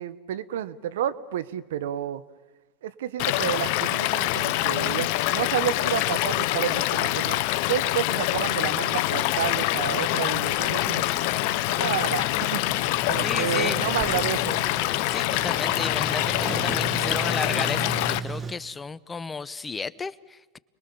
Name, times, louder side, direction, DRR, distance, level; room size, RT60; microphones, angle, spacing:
voice 1, 0.0-2.2 2.8-7.4 7.7-11.0 11.7-12.6 13.1-14.6, right 10 dB, 80° right, 15 dB, 1.0 m, -30 dB
Stream / Liquid, 3.2-18.2, left 17 dB, 65° left, 0.8 m, -25 dB
sound 1, 10.3-17.5, right 1 dB, 5° right, 4.5 m, -47 dB
Sliding door, 10.6-18.5, right 5 dB, 20° right, 1.7 m, -37 dB
voice 2, 13.2-13.8 15.1-20.6, left 4 dB, 20° left, 17 dB, 0.7 m, -33 dB
30.0 x 21.5 x 7.0 m, 1.2 s
hypercardioid pair, 95°, 0 cm